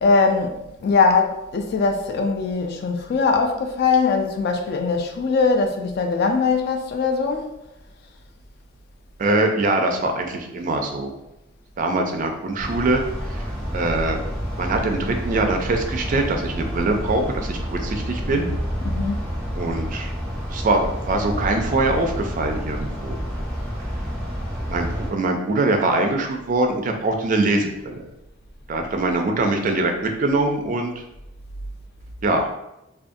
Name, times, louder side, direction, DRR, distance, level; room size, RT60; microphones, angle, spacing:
voice 1, 0.0-7.5 18.8-19.3, left 4 dB, 55° left, 0.3 m, -21 dB
voice 2, 9.2-11.1 11.8-13.4 13.7-14.2 14.6-18.5 19.5-20.1 20.5-23.2 24.7-28.0 28.7-31.0 32.2-32.5, right 2 dB, 40° right, 0.3 m, -23 dB
sound 1, 12.6-25.1, equal, 5° left, 0.9 m, -29 dB
2.4 x 2.3 x 2.5 m
head